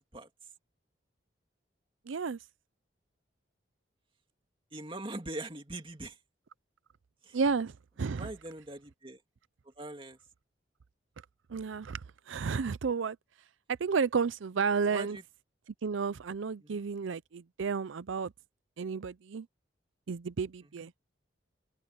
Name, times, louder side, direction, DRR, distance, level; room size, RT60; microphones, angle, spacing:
voice 1, 2.1-2.4 7.3-8.3 11.5-13.2 13.7-15.2 15.8-18.3 18.8-19.5 20.1-20.9, right 5 dB, 80° right, 0.5 m, -32 dB
voice 2, 4.7-6.2 7.2-7.4 8.2-9.2 9.6-10.2 14.9-15.2 16.6-16.9 20.8-20.9, right 2 dB, 25° right, 2.6 m, -42 dB
open air
head